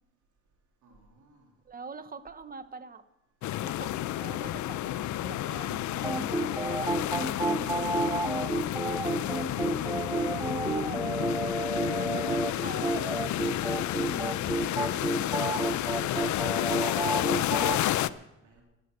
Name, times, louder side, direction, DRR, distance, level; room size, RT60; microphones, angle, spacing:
voice 1, 0.8-1.5 16.1-16.5 17.2-18.6, right 3 dB, 75° right, 1 dB, 2.9 m, -55 dB
voice 2, 1.6-3.1 3.6-7.9 8.3-8.4 8.8-11.6 12.0-13.6 13.9-14.4 14.8-15.8, right 4 dB, 30° right, 13 dB, 1.0 m, -45 dB
sound 1, 3.4-18.1, left 14 dB, 70° left, 0.5 m, -31 dB
sound 2, 6.0-17.8, right 2 dB, 10° right, 0.7 m, -31 dB
sound 3, 12.7-13.6 13.9-15.0, left 6 dB, 50° left, 1.8 m, -50 dB
11.5 x 11.0 x 6.7 m, 0.91 s
cardioid pair, 90°, 30 cm